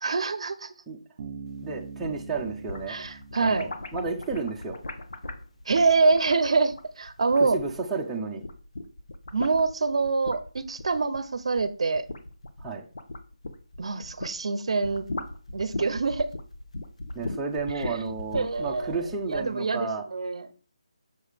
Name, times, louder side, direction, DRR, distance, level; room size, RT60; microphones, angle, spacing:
voice 1, 0.0-0.7 2.9-3.7 5.7-7.6 9.3-12.0 13.8-15.1 15.5-16.3 17.8-17.9 18.3-19.0 19.3-20.5, right 4 dB, 60° right, 13 dB, 0.6 m, -25 dB
Bass guitar, 1.2-4.8, right 5 dB, 25° right, 1.4 m, -43 dB
voice 2, 1.6-3.0 3.4-4.8 7.4-8.4 12.6-12.8 17.1-20.1, right 4 dB, 5° right, -4 dB, 0.5 m, -32 dB
sound 1, 1.8-8.0 8.3-14.4 14.7-19.5, left 2 dB, 80° left, 0.9 m, -39 dB
6.5 x 4.7 x 3.4 m, 0.37 s
hypercardioid pair, 170°, 3 cm